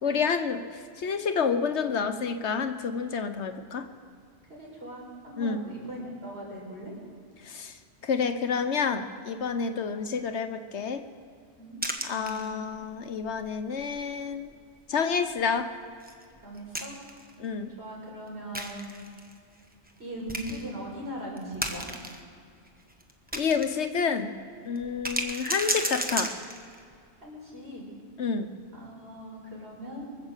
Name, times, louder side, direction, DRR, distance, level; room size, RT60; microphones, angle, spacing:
voice 1, 0.0-3.9 5.4-5.6 7.4-7.8 8.0-11.0 12.0-14.6 14.9-15.7 17.4-17.7 23.3-24.3 24.6-26.3 28.2-28.5, left 5 dB, 75° left, 9 dB, 1.3 m, -29 dB
voice 2, 4.5-6.9 11.6-11.8 16.4-16.9 17.8-18.9 20.0-21.9 27.2-27.9 28.7-30.1, equal, 65° right, -3 dB, 5.5 m, -39 dB
sound 1, 11.8-12.8 13.2-13.3 13.8-14.0 14.3-14.4 16.0-17.3 18.5-19.3 19.9-20.0 20.3-20.7 21.4-22.2 22.7-23.8 24.1-24.2 24.8-26.8, right 1 dB, 10° right, 1.2 m, -33 dB
24.0 x 8.1 x 7.4 m, 2.3 s
omnidirectional pair, 1.2 m